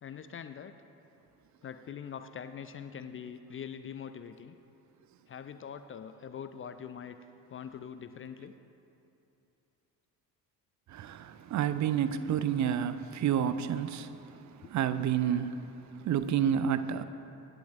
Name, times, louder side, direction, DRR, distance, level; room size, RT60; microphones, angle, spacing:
voice 1, 0.0-0.7 1.6-4.5 5.3-7.2 7.5-8.5 14.6-14.7, left 7 dB, 25° left, 0.5 m, -43 dB
voice 2, 10.9-17.0, right 9 dB, 35° right, 0.7 m, -30 dB
24.5 x 11.5 x 2.6 m
figure-of-eight pair, 50°, 50 cm